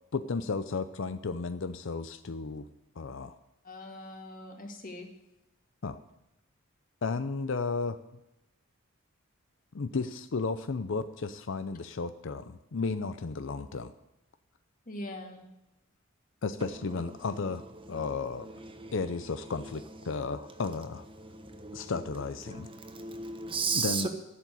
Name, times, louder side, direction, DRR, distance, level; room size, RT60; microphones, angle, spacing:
voice 1, 0.1-2.7 3.0-3.4 5.8-6.0 7.0-8.0 9.7-13.9 16.4-17.6 17.9-18.5 18.9-21.1 21.7-22.7 23.7-24.1, left 4 dB, 60° left, 11 dB, 0.5 m, -33 dB
voice 2, 3.6-5.1 14.9-15.4, left 1 dB, 40° left, 3 dB, 2.1 m, -42 dB
voice 3, 21.2-21.9 22.5-24.1, right 5 dB, 25° right, 6 dB, 1.2 m, -34 dB
12.0 x 7.4 x 9.3 m, 0.91 s
head